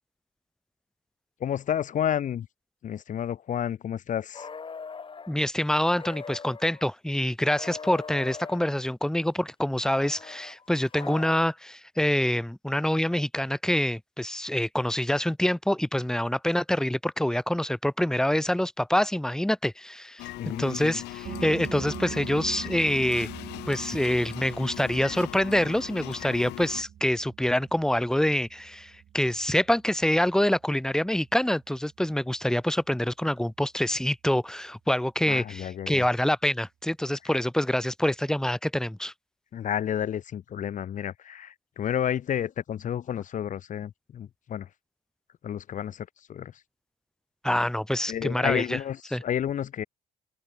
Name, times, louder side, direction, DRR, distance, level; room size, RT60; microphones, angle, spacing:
voice 1, 1.4-2.5 2.8-4.5 20.4-21.0 35.3-36.1 39.5-44.7 45.4-46.5 48.1-49.0 49.2-49.8, left 9 dB, 50° left, 1.5 m, -31 dB
sound 1, 4.3-5.3 5.9-6.8 7.5-8.7 9.8-11.4, left 5 dB, 30° left, 6.9 m, -41 dB
voice 2, 5.3-23.3 23.7-39.1 47.4-48.8 49.1-49.2, left 1 dB, 5° left, 2.6 m, -26 dB
sound 2, 20.2-26.8, left 20 dB, 90° left, 5.2 m, -39 dB
sound 3, 21.2-32.6, right 10 dB, 55° right, 6.3 m, -44 dB
cardioid pair, 110°, 17 cm